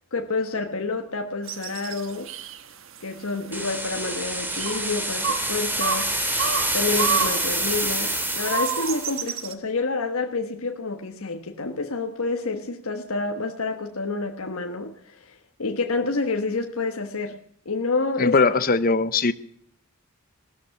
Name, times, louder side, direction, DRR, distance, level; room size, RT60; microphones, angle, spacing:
voice 1, 0.1-2.3 3.0-6.2 6.7-17.4 17.6-18.4, left 3 dB, 85° left, 1.3 m, -28 dB
sound 1, 1.5-9.5, right 6 dB, 70° right, 1.3 m, -31 dB
sound 2, 3.5-9.2, right 1 dB, 10° right, 2.4 m, -27 dB
voice 2, 18.2-19.3, left 4 dB, 40° left, 0.8 m, -20 dB
17.5 x 13.0 x 5.8 m
head